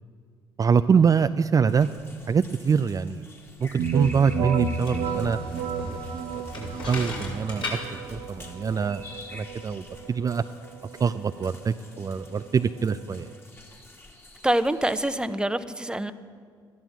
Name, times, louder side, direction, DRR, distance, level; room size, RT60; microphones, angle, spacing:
voice 1, 0.6-1.9 2.3-3.2 3.6-5.4 5.8-6.0 6.6-7.8 8.1-9.0 9.3-10.4 11.0-13.3, right 6 dB, 35° right, 10 dB, 0.5 m, -24 dB
sound 1, 1.7-15.3, left 1 dB, 20° left, 2.4 m, -49 dB
sound 2, 3.8-13.4, right 5 dB, 70° right, 1.2 m, -33 dB
sound 3, 4.6-10.1, left 2 dB, 55° left, 5.3 m, -38 dB
voice 2, 14.4-16.1, right 1 dB, 10° right, 11 dB, 0.9 m, -25 dB
13.5 x 11.5 x 7.4 m, 2.1 s
hypercardioid pair, 55°, 10 cm